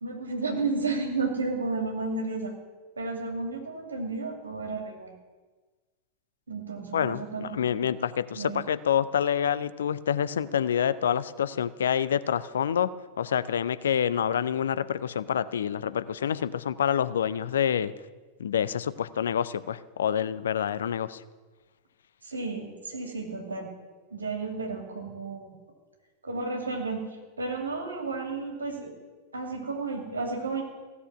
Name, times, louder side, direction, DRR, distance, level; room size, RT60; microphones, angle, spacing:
voice 1, 0.0-2.5 3.0-5.1 6.5-7.8 8.3-8.6 22.2-23.7 24.1-25.6 26.2-27.0 27.4-28.9 29.3-30.6, right 3 dB, 75° right, 2 dB, 2.5 m, -32 dB
voice 2, 6.9-12.9 13.2-17.9 18.4-21.2, left 8 dB, 65° left, 16 dB, 0.5 m, -27 dB
15.5 x 6.9 x 8.5 m, 1.3 s
figure-of-eight pair, 90°, 0 cm